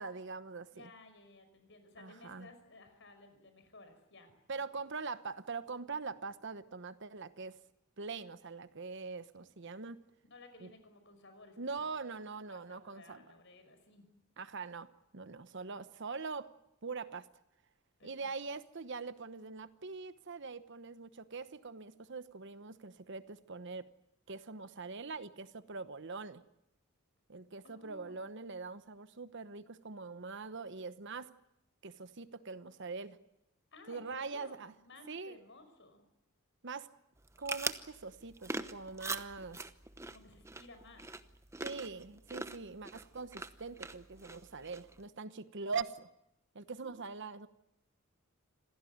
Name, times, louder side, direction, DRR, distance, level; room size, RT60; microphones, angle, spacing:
voice 1, 0.0-0.9 2.0-2.5 4.5-7.6 8.0-10.0 10.6-10.7 11.6-13.2 14.4-14.9 15.1-16.5 16.8-17.3 18.0-23.9 24.3-26.4 27.3-31.3 31.8-33.2 33.9-34.7 35.1-35.4 36.6-36.9 37.4-39.7 41.6-46.1 46.5-47.5, right 4 dB, 60° right, 13 dB, 1.1 m, -43 dB
voice 2, 0.7-4.6 10.3-14.1 18.0-18.3 27.6-28.3 33.7-36.0 40.1-41.1 46.8-47.0, left 2 dB, 60° left, 8 dB, 5.6 m, -57 dB
sound 1, 37.2-45.0, right 3 dB, 15° right, 0.9 m, -43 dB
26.5 x 17.0 x 9.5 m, 0.84 s
head